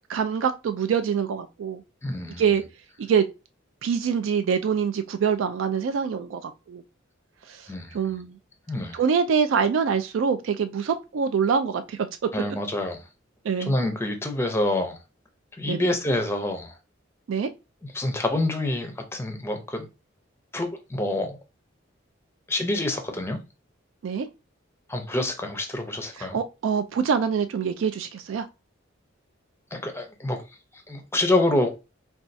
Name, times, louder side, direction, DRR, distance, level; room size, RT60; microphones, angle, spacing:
voice 1, 0.1-1.8 2.4-2.6 3.0-3.3 3.8-6.8 7.5-8.4 8.9-12.3 13.4-13.7 15.6-15.9 17.3-17.5 24.0-24.3 26.2-28.5, right 6 dB, 75° right, 0.3 m, -25 dB
voice 2, 2.0-2.4 7.7-8.2 8.7-9.0 12.3-13.0 13.7-15.0 15.6-16.7 17.9-19.9 20.5-21.4 22.5-23.4 24.9-26.4 29.7-30.4 30.9-31.7, left 1 dB, 15° left, 0.6 m, -27 dB
4.3 x 2.3 x 2.6 m
head